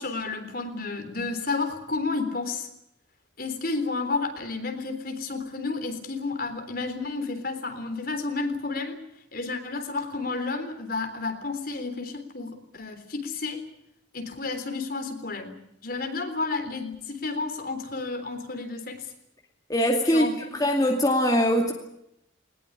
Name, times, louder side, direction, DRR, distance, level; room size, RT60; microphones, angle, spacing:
voice 1, 0.0-2.7 3.4-9.0 9.3-13.6 14.1-19.1 20.1-20.3, left 3 dB, 50° left, 6 dB, 3.6 m, -31 dB
voice 2, 19.7-20.3 20.5-21.7, equal, 20° left, 1 dB, 2.4 m, -22 dB
20.0 x 20.0 x 9.9 m, 0.79 s
head